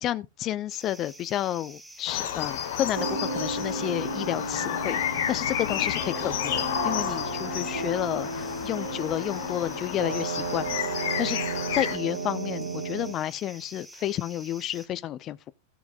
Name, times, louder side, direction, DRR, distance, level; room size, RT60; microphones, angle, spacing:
voice 1, 0.0-11.4 11.7-15.5, left 12 dB, 35° left, 0.7 m, -31 dB
sound 1, 0.7-14.9, right 1 dB, 5° right, 1.3 m, -48 dB
sound 2, 2.1-12.0, left 9 dB, 55° left, 1.3 m, -31 dB
sound 3, 2.9-13.1, right 4 dB, 70° right, 1.7 m, -34 dB
16.5 x 7.2 x 2.5 m
figure-of-eight pair, 90°, 0 cm